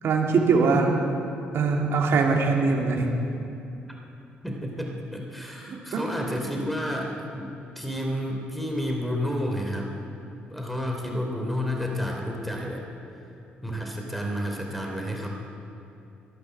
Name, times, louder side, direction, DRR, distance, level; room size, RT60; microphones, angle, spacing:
voice 1, 0.0-1.0 1.5-3.1 5.7-6.0, right 4 dB, 60° right, 1 dB, 2.5 m, -22 dB
voice 2, 4.4-9.9 10.5-12.8 13.6-15.3, equal, ahead, 1 dB, 3.1 m, -30 dB
16.0 x 11.5 x 7.6 m, 2.7 s
hypercardioid pair, 50°, 5 cm